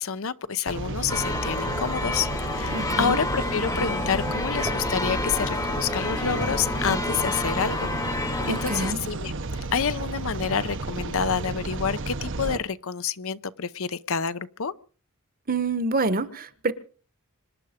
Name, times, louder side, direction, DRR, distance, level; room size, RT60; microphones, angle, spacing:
voice 1, 0.0-9.3 9.7-14.7, left 6 dB, 65° left, 0.8 m, -28 dB
sound 1, 0.7-12.5, right 3 dB, 60° right, 0.9 m, -32 dB
sound 2, 1.1-8.9, left 2 dB, 15° left, 0.8 m, -29 dB
voice 2, 2.7-3.2 8.4-9.0 15.5-16.7, right 3 dB, 40° right, 1.2 m, -27 dB
sound 3, 4.4-4.9 6.3-6.9 8.1-8.6 10.4-11.0 12.1-12.7, right 1 dB, 20° right, 1.1 m, -41 dB
25.5 x 11.0 x 5.2 m
head